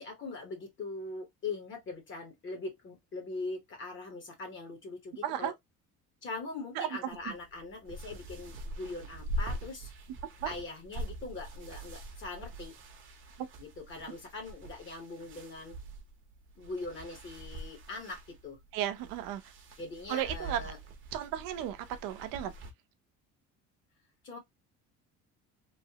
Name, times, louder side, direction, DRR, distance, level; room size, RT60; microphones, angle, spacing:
voice 1, 0.0-5.5 6.2-9.9 10.4-12.7 13.6-15.8 16.6-18.6 19.8-20.8 24.2-24.4, left 3 dB, 35° left, 0.9 m, -41 dB
voice 2, 5.2-5.5 6.8-7.3 10.4-10.5 13.4-13.5 18.7-19.4 20.1-20.7 21.1-22.5, right 11 dB, 85° right, 0.6 m, -34 dB
sound 1, 7.1-22.7, right 1 dB, 40° right, 0.7 m, -43 dB
3.2 x 2.0 x 2.7 m
cardioid pair, 150°, 32 cm